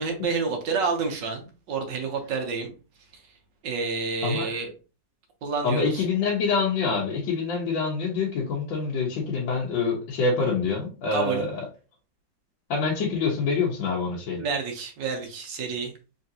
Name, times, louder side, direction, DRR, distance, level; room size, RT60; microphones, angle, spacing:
voice 1, 0.0-2.7 3.6-4.7 5.4-6.0 11.1-11.4 14.4-15.9, right 4 dB, 70° right, 4 dB, 1.4 m, -29 dB
voice 2, 5.6-11.6 12.7-14.4, left 4 dB, 80° left, -3 dB, 1.6 m, -26 dB
3.8 x 3.3 x 2.7 m, 0.33 s
omnidirectional pair, 2.0 m